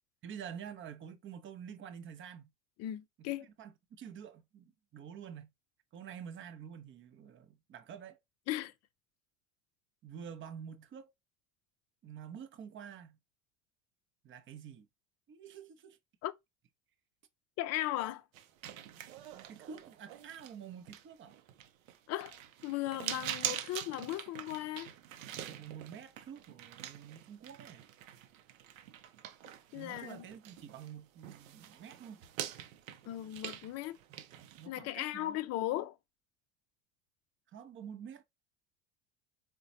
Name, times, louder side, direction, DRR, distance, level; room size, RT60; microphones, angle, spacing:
voice 1, 0.2-2.5 3.2-5.5 5.9-8.2 10.0-11.1 12.0-13.2 14.2-14.9 15.3-16.0 19.3-21.4 25.4-27.8 29.7-32.2 34.1-34.2 34.6-35.9 37.5-38.2, right 8 dB, 30° right, 0.6 m, -48 dB
voice 2, 2.8-3.5 8.5-8.7 16.2-16.3 17.6-18.2 22.1-22.4 22.6-24.9 29.7-30.3 33.1-34.0 34.7-36.0, left 14 dB, 40° left, 0.4 m, -37 dB
sound 1, 18.3-30.9 31.2-34.7, right 11 dB, 85° right, 0.6 m, -44 dB
3.8 x 2.2 x 2.6 m
hypercardioid pair, 90°, 40 cm